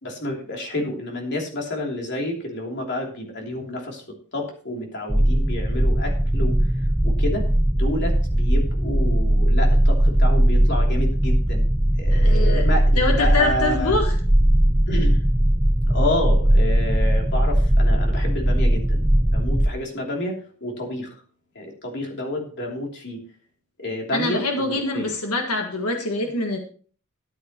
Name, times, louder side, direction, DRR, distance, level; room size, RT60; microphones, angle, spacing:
voice 1, 0.0-4.0 4.3-6.7 7.0-7.5 7.7-11.7 12.0-14.0 14.9-15.2 15.9-19.0 19.3-21.1 21.5-23.2 23.8-25.1, left 1 dB, 50° left, 0 dB, 3.1 m, -29 dB
sound 1, 5.1-19.7, right 1 dB, 5° right, 0.4 m, -19 dB
voice 2, 12.1-12.6 13.0-14.1 24.1-26.6, left 2 dB, 85° left, 3 dB, 1.6 m, -24 dB
13.5 x 9.6 x 3.0 m, 0.42 s
head